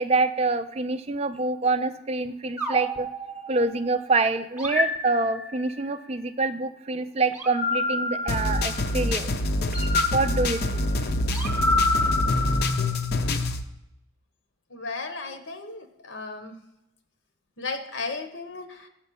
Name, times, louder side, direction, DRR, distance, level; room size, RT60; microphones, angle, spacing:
voice 1, 0.0-3.1 3.5-9.3 10.1-10.9, right 3 dB, 30° right, 11 dB, 0.4 m, -26 dB
sound 1, 2.6-3.9 4.6-5.8 7.3-9.1 9.7-13.2, left 2 dB, 5° right, 0.8 m, -28 dB
sound 2, 8.3-13.6, left 1 dB, 50° left, 0.6 m, -26 dB
voice 2, 14.7-16.6 17.6-18.9, left 3 dB, 70° left, 6 dB, 0.9 m, -35 dB
7.6 x 4.4 x 6.8 m, 0.86 s
head